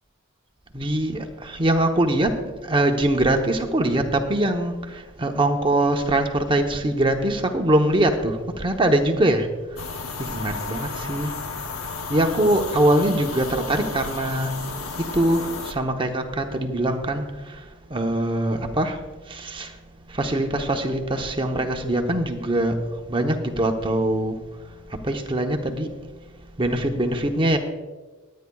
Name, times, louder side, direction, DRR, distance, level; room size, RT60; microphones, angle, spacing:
voice 1, 0.7-9.5 10.2-11.3 12.1-14.5 15.0-17.6 17.9-19.0 19.3-19.8 20.1-22.8 23.1-24.4 25.0-25.9 26.6-27.6, right 1 dB, 25° right, 4 dB, 0.9 m, -23 dB
sound 1, 9.8-15.7, left 4 dB, 85° left, 0.9 m, -33 dB
23.0 x 9.5 x 2.3 m, 1.3 s
head